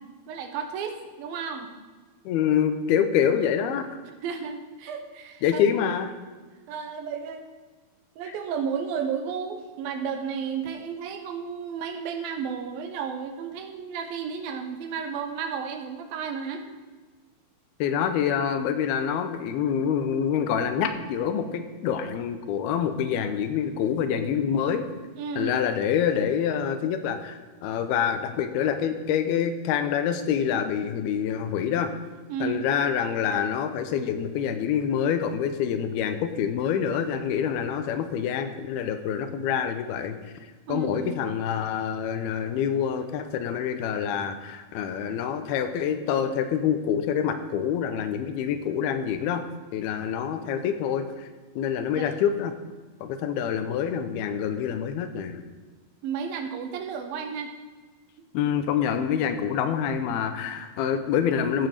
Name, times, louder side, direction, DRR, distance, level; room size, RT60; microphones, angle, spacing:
voice 1, 0.3-1.7 4.0-5.6 6.7-7.5 8.2-16.6 25.2-25.5 32.3-32.6 40.7-41.2 51.9-52.1 56.0-57.5 58.4-58.5, right 6 dB, 75° right, 6 dB, 2.7 m, -33 dB
voice 2, 2.3-4.0 5.4-6.2 8.3-8.4 17.8-24.8 25.4-31.9 32.4-40.2 40.7-49.4 49.7-51.3 51.6-52.5 53.0-55.4 58.3-61.7, left 8 dB, 85° left, 9 dB, 2.8 m, -26 dB
14.0 x 6.2 x 6.5 m, 1.3 s
omnidirectional pair, 4.4 m